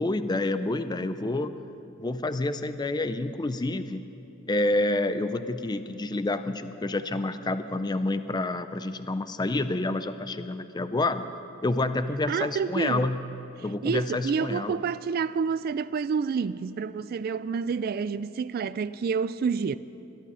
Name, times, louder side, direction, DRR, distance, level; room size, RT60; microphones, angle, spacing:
voice 1, 0.0-1.5 2.0-4.0 4.5-11.2 11.6-13.3 13.6-14.8, left 2 dB, 20° left, 0.4 m, -28 dB
voice 2, 12.3-13.1 13.8-19.8, right 5 dB, 45° right, 0.3 m, -28 dB
21.5 x 11.5 x 5.6 m
head